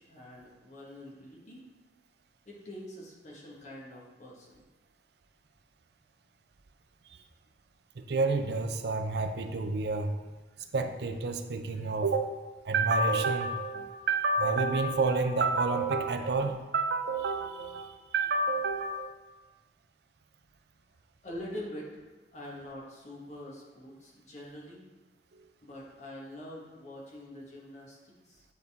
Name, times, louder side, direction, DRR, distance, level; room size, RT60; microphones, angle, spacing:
voice 1, 0.0-1.6 2.4-4.6 21.2-22.0 22.3-24.8 25.6-28.4, left 1 dB, 40° left, -4 dB, 1.5 m, -45 dB
voice 2, 8.0-10.1 10.7-12.3 12.6-19.1, right 3 dB, 65° right, 7 dB, 0.5 m, -29 dB
9.5 x 4.0 x 3.6 m, 1.2 s
head